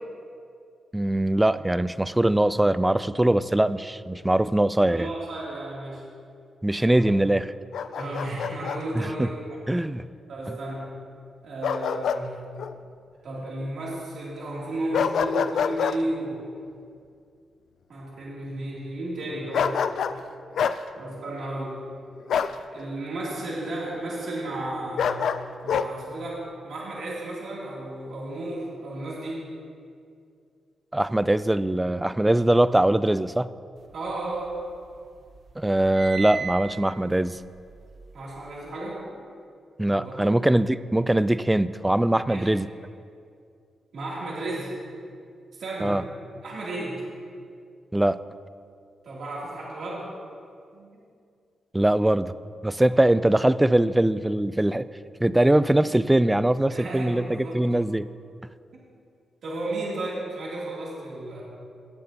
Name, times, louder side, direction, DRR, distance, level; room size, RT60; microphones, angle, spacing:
voice 1, 0.9-5.1 6.6-7.5 9.0-9.3 9.7-10.1 10.5-10.6 30.9-33.5 35.6-37.4 39.8-42.7 45.8-46.0 47.9-48.2 51.7-52.3 52.6-54.9 55.2-58.1, right 1 dB, 10° right, 15 dB, 0.3 m, -22 dB
voice 2, 4.9-6.0 6.9-7.1 7.9-9.6 10.3-10.9 11.4-12.4 13.2-16.5 17.9-19.8 21.0-21.8 22.7-25.3 25.6-29.4 33.9-34.6 38.1-39.0 39.9-40.2 42.3-42.5 43.9-44.7 45.5-46.0 46.4-47.0 49.0-50.1 50.7-50.9 56.7-57.6 59.4-61.4, right 1 dB, 75° right, -6 dB, 2.8 m, -33 dB
Bark, 7.7-8.8 11.6-12.2 12.6-12.7 14.9-16.0 19.5-20.2 20.6-20.8 22.3-22.6 25.0-25.9, left 7 dB, 80° left, 0.4 m, -26 dB
sound 1, 33.9-35.0 35.3-38.7, right 7 dB, 50° right, 0.6 m, -38 dB
18.0 x 7.8 x 2.9 m, 2.3 s
cardioid pair, 90°, 0 cm